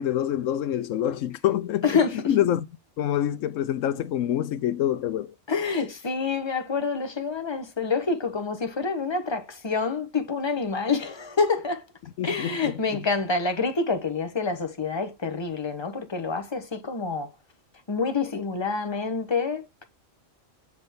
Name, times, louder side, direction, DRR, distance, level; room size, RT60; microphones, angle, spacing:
voice 1, 0.0-2.7 3.0-5.3 12.2-13.1, left 11 dB, 90° left, 1.0 m, -26 dB
voice 2, 1.8-2.2 5.5-11.8 12.2-17.3 17.9-19.8, left 4 dB, 20° left, 1.1 m, -27 dB
7.9 x 3.9 x 3.5 m
omnidirectional pair, 1.3 m